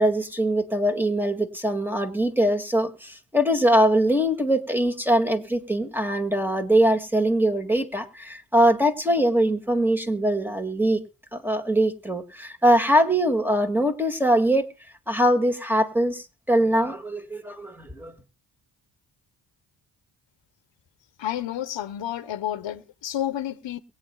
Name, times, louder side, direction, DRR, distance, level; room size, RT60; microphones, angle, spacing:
voice 1, 0.0-11.0 11.3-14.7 15.1-18.1, right 1 dB, 5° right, 2.1 m, -22 dB
voice 2, 21.2-23.8, left 11 dB, 65° left, 1.0 m, -30 dB
23.0 x 8.9 x 2.3 m
supercardioid pair, 45°, 49 cm